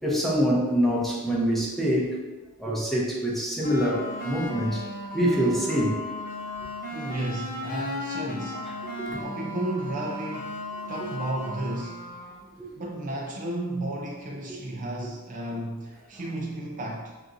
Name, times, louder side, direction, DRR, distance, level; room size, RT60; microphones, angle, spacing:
voice 1, 0.0-2.1 2.6-4.8 5.1-6.0 9.0-9.2 12.6-12.7 14.5-14.9, equal, ahead, -4 dB, 0.7 m, -25 dB
sound 1, 3.6-12.4, left 1 dB, 40° left, 0.6 m, -36 dB
voice 2, 6.9-8.7 9.2-10.6 10.9-12.1 12.7-17.2, right 1 dB, 35° right, -1 dB, 0.4 m, -33 dB
5.8 x 2.5 x 2.5 m, 1.2 s
head